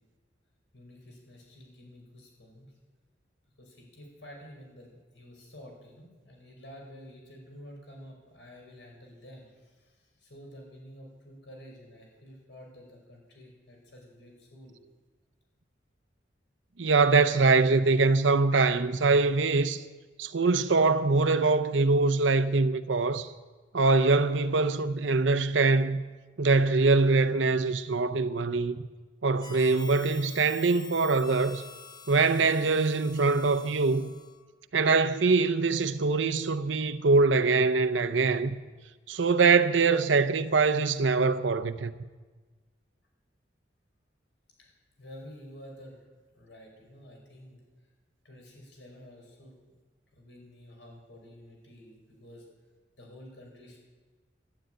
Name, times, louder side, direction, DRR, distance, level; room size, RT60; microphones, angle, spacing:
voice 1, 0.7-2.7 3.6-14.8 44.6-44.7 45.0-46.0 46.3-47.6 48.2-49.6 50.1-52.5 53.0-53.8, equal, 70° left, 5.3 m, -50 dB
voice 2, 16.8-19.8 20.2-23.3 23.7-26.0 26.4-28.8 29.2-31.6 32.1-34.1 34.7-38.6 39.1-41.9, right 3 dB, 85° right, 0.7 m, -23 dB
Harmonica, 29.4-34.4, left 5 dB, 20° left, 0.8 m, -47 dB
12.0 x 11.5 x 9.0 m
head